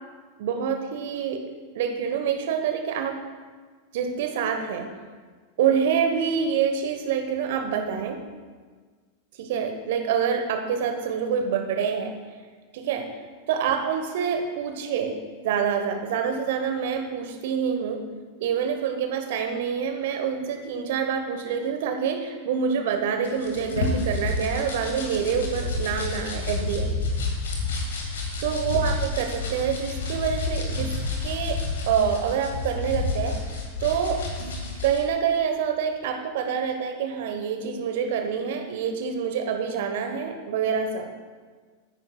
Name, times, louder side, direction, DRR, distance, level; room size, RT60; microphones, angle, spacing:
voice 1, 0.4-1.4 1.7-3.2 3.9-4.9 5.6-8.2 9.4-12.1 12.7-13.1 13.5-15.2 15.4-18.0 18.4-27.0 28.4-30.9 31.2-31.6 31.9-41.1, right 7 dB, 55° right, 5 dB, 1.1 m, -26 dB
sound 1, 23.2-35.0, left 3 dB, 65° left, 1.9 m, -29 dB
14.5 x 9.6 x 2.3 m, 1.5 s
figure-of-eight pair, 90°, 0 cm